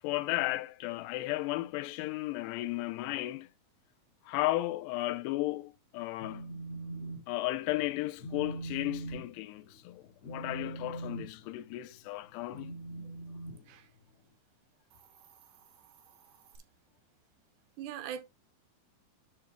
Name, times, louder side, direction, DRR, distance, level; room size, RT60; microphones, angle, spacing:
voice 1, 0.0-3.5 4.3-6.6 7.3-12.8, left 18 dB, 80° left, 2.7 m, -34 dB
Telephone, 6.0-7.2 7.5-7.8 8.2-14.3, right 2 dB, 45° left, 1.8 m, -43 dB
Hiss, 14.8-16.6, right 8 dB, 60° right, 2.7 m, -61 dB
voice 2, 17.8-18.2, right 9 dB, 80° right, 3.0 m, -40 dB
10.5 x 6.3 x 2.3 m
omnidirectional pair, 4.9 m